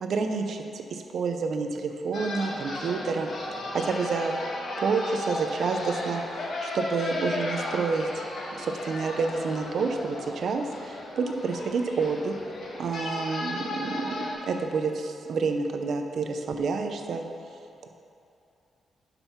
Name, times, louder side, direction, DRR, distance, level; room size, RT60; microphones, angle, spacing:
voice 1, 0.0-4.3 4.8-8.2 8.5-12.4 12.8-17.2 17.8-17.9, right 4 dB, 65° right, 5 dB, 0.6 m, -29 dB
sound 1, 2.1-14.3, left 1 dB, 65° left, 1.3 m, -35 dB
7.2 x 5.4 x 5.6 m, 2.7 s
cardioid pair, 110°, 0 cm